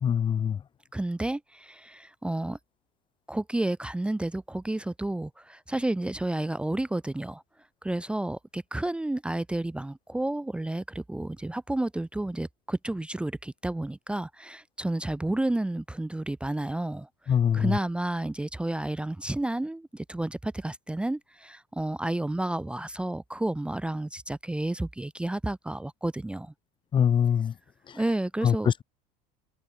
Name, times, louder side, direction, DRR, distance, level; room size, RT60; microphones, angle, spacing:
voice 1, 0.0-0.6 17.3-17.7 26.9-27.5 28.4-28.8, left 8 dB, 25° left, 0.9 m, -23 dB
voice 2, 0.9-2.6 3.3-7.4 7.8-26.5 27.9-28.7, right 1 dB, 5° right, 0.8 m, -31 dB
cardioid pair, 145°, 20 cm